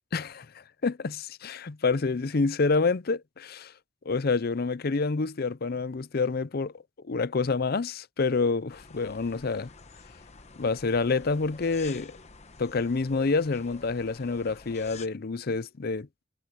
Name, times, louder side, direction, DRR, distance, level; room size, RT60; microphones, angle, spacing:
voice 1, 0.1-3.7 4.1-9.7 10.6-12.1 12.6-16.1, left 4 dB, 55° left, 0.6 m, -28 dB
sound 1, 8.7-15.1, left 4 dB, 35° left, 1.0 m, -48 dB
head